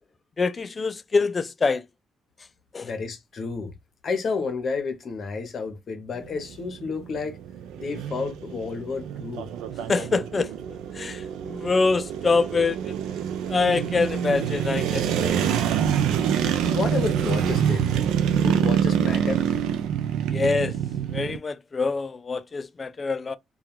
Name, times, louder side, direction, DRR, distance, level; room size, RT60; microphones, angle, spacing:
voice 1, 0.4-1.8 2.7-2.9 9.9-10.5 10.9-12.9 13.5-15.4 20.3-20.7 21.1-23.4, left 4 dB, 35° left, 0.3 m, -25 dB
voice 2, 2.8-3.7 4.0-7.4 7.8-9.4 16.7-17.9 18.3-19.4, left 4 dB, 50° left, 0.8 m, -30 dB
sound 1, 6.2-21.4, right 8 dB, 90° right, 0.4 m, -26 dB
2.3 x 2.3 x 2.9 m
cardioid pair, 90°, 0 cm